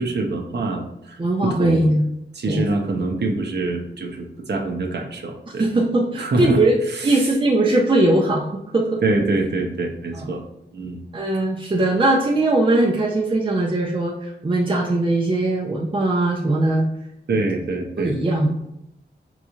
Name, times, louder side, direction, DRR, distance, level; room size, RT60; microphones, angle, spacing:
voice 1, 0.0-1.8 2.3-5.7 6.2-6.6 6.9-7.3 9.0-10.4 10.7-11.0 17.3-18.1, right 2 dB, 65° right, 2 dB, 0.7 m, -25 dB
voice 2, 1.2-2.1 2.5-2.7 5.6-9.0 11.1-16.9 18.0-18.7, right 2 dB, 25° right, -2 dB, 0.5 m, -20 dB
3.9 x 3.1 x 2.3 m, 0.82 s
cardioid pair, 55°, 19 cm